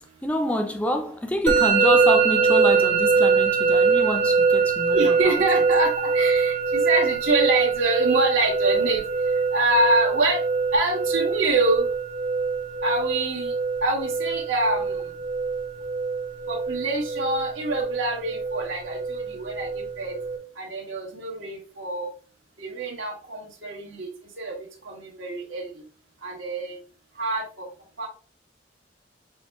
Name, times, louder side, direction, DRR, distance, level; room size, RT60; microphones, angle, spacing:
voice 1, 0.2-5.4, left 1 dB, 5° left, 0.3 m, -27 dB
Musical instrument, 1.5-20.4, right 5 dB, 60° right, 0.9 m, -23 dB
voice 2, 4.9-9.0 9.5-10.4 10.7-11.9 12.8-13.5 13.8-15.0 16.5-20.1 20.6-22.1 22.6-24.1 24.4-24.5 24.8-25.6 26.2-26.8 27.2-27.7 28.0-28.1, right 2 dB, 85° right, 1.5 m, -25 dB
6.1 x 2.1 x 3.5 m
head